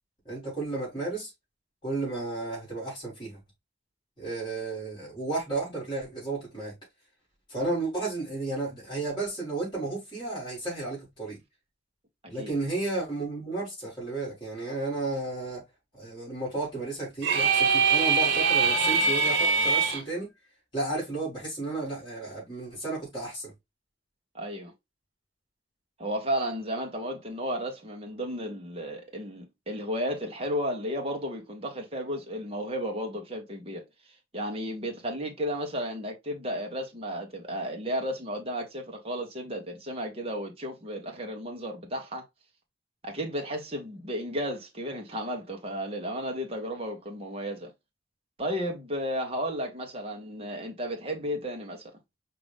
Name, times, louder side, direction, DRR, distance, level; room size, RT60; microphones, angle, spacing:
voice 1, 0.2-1.3 1.8-3.4 4.2-6.7 7.5-11.4 12.3-15.6 15.9-20.3 20.7-23.5, right 3 dB, 25° left, 3.3 m, -33 dB
sound 1, 17.2-20.0, right 5 dB, 80° right, 1.2 m, -23 dB
voice 2, 24.3-24.7 26.0-33.8 34.3-42.2 43.0-47.7 48.4-51.8, equal, 30° right, 1.2 m, -33 dB
5.1 x 2.9 x 3.4 m
head